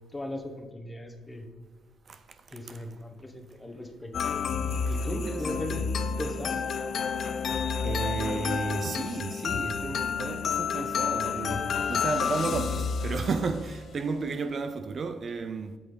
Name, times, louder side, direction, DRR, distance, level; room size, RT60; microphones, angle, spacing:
voice 1, 0.1-1.5 2.5-4.1 4.9-5.8 6.2-6.6, left 1 dB, 15° left, 1.1 m, -37 dB
sound 1, 4.1-13.8, left 6 dB, 55° left, 0.5 m, -30 dB
voice 2, 4.9-5.9 7.8-15.8, right 4 dB, 45° right, 0.4 m, -33 dB
8.3 x 5.7 x 3.9 m
cardioid pair, 90°, 0 cm